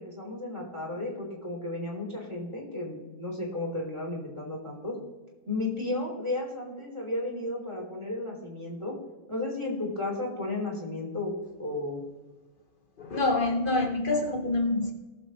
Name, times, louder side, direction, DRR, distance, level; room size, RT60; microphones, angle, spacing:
voice 1, 0.0-5.0 5.5-9.0 9.3-11.3 11.6-12.0, left 2 dB, 15° right, -2 dB, 3.4 m, -33 dB
voice 2, 13.0-14.9, left 2 dB, 85° left, 3 dB, 0.4 m, -26 dB
19.0 x 7.2 x 3.2 m, 1.2 s
omnidirectional pair, 2.2 m